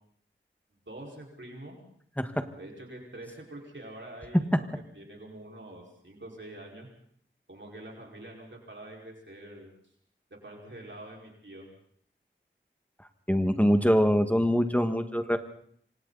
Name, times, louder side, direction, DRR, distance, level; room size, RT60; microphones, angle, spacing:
voice 1, 0.7-1.8 2.6-6.9 7.5-9.7 10.4-11.7, right 1 dB, 65° right, -1 dB, 5.3 m, -45 dB
voice 2, 13.3-15.4, equal, 5° left, 8 dB, 1.8 m, -24 dB
26.5 x 25.5 x 4.2 m, 0.62 s
wide cardioid pair, 45°, 21 cm